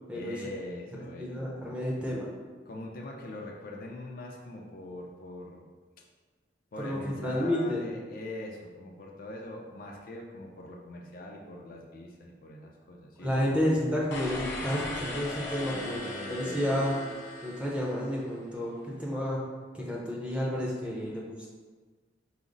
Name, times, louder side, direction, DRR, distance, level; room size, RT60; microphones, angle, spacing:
voice 1, 0.1-1.4 2.6-5.7 6.7-13.6 15.7-16.9, left 1 dB, 50° left, 0 dB, 0.4 m, -42 dB
voice 2, 1.2-2.3 6.8-7.8 13.2-16.0 16.3-16.9 17.4-19.4 19.7-21.5, equal, 5° right, -4 dB, 0.6 m, -30 dB
sound 1, 14.1-18.3, left 1 dB, 70° left, 0.9 m, -38 dB
4.9 x 2.0 x 3.8 m, 1.5 s
head